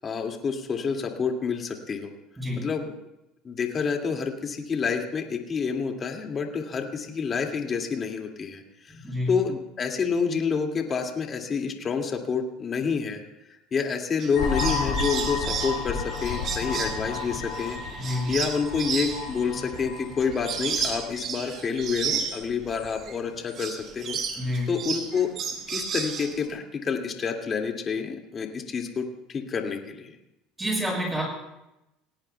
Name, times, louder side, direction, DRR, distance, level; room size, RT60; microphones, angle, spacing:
voice 1, 0.0-2.1 2.6-2.9 3.4-8.9 9.3-13.2 13.7-24.2 24.7-25.3 25.7-30.1, left 5 dB, 35° left, 2 dB, 2.3 m, -28 dB
voice 2, 2.4-2.7 8.9-9.4 18.0-18.3 24.4-24.7 30.6-31.2, equal, 10° right, -1 dB, 7.4 m, -28 dB
sound 1, 14.2-23.1 23.4-26.5, right 6 dB, 50° right, 3.5 m, -33 dB
sound 2, 14.3-21.1, left 5 dB, 65° left, 7.8 m, -32 dB
29.0 x 18.0 x 2.3 m, 0.91 s
supercardioid pair, 110°, 0 cm